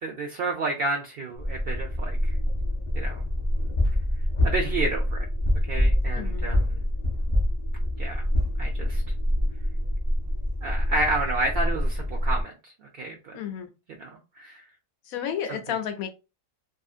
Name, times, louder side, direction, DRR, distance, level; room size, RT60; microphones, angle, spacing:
voice 1, 0.0-2.4 2.9-3.2 4.4-5.3 5.7-6.8 8.0-8.3 8.6-9.0 10.6-13.3 14.0-14.1 14.4-14.6 15.5-15.6, right 2 dB, 65° right, 3 dB, 0.6 m, -30 dB
sound 1, 1.4-12.4, left 1 dB, 35° left, 0.4 m, -26 dB
voice 2, 6.1-6.5 13.3-13.7 15.1-16.1, left 8 dB, 85° left, 8 dB, 1.1 m, -32 dB
2.7 x 2.6 x 2.4 m, 0.29 s
omnidirectional pair, 1.4 m